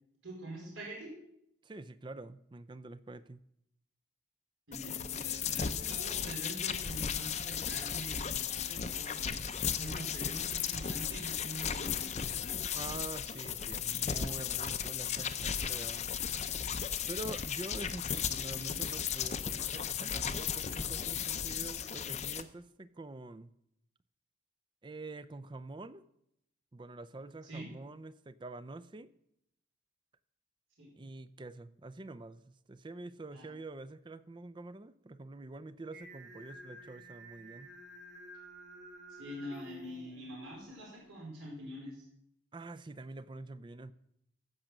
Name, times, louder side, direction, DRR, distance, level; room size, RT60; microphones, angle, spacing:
voice 1, 0.2-1.1 4.7-12.2 18.4-18.7 27.4-27.7 30.8-30.9 33.3-33.5 39.1-42.0, right 1 dB, 80° right, -3 dB, 4.9 m, -45 dB
voice 2, 1.6-3.4 12.7-16.1 17.1-23.5 24.8-26.0 26.7-29.1 30.9-37.7 42.5-43.9, right 2 dB, 25° right, 13 dB, 0.4 m, -46 dB
sound 1, 4.7-22.4, left 8 dB, 35° left, 0.5 m, -35 dB
Singing, 35.9-41.0, right 1 dB, 55° right, 2.4 m, -52 dB
15.0 x 6.1 x 6.5 m, 0.78 s
head